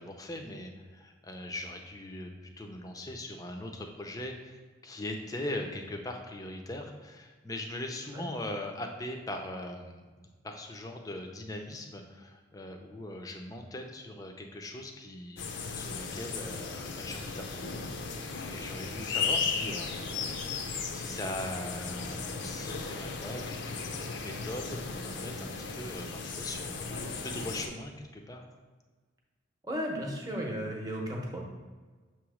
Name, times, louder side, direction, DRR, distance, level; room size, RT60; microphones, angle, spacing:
voice 1, 0.0-2.3 2.6-10.0 10.4-15.4 15.7-18.0 18.2-20.0 20.9-28.4, left 1 dB, 20° left, 3 dB, 0.5 m, -40 dB
sound 1, 15.4-27.7, left 5 dB, 70° left, 0.6 m, -36 dB
voice 2, 29.6-31.4, equal, 20° right, 0 dB, 0.8 m, -34 dB
6.6 x 3.0 x 4.9 m, 1.4 s
head